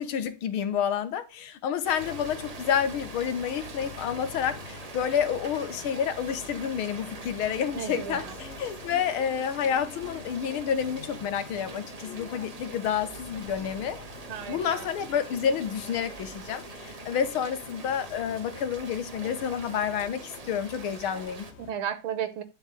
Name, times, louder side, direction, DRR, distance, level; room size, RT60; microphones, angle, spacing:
voice 1, 0.0-14.0 14.5-21.5, left 8 dB, 90° left, 1.9 m, -29 dB
Rain, 1.8-21.5, right 4 dB, 35° right, 0.5 m, -44 dB
sound 1, 2.0-21.7, left 5 dB, 40° left, 1.0 m, -47 dB
voice 2, 7.7-8.4 14.3-14.9 21.6-22.4, right 8 dB, 80° right, 1.8 m, -34 dB
11.0 x 4.5 x 7.6 m
omnidirectional pair, 2.2 m